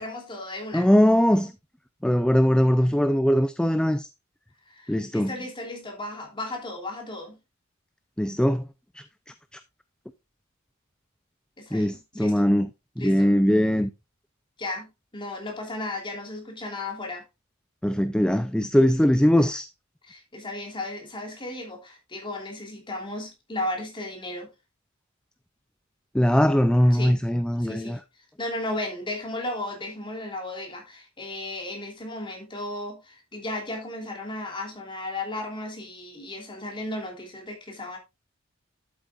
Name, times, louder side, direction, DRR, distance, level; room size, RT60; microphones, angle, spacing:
voice 1, 0.0-0.9 4.7-7.4 11.6-12.5 13.0-13.4 14.6-17.2 20.0-24.5 26.9-27.2 27.6-28.0 28.4-38.0, left 1 dB, 25° left, 3.1 m, -35 dB
voice 2, 0.7-1.5 2.0-4.1 4.9-5.3 8.2-8.6 11.7-12.7 13.0-13.9 17.8-19.7 26.1-28.0, equal, 5° left, 0.4 m, -21 dB
12.0 x 8.1 x 2.5 m
head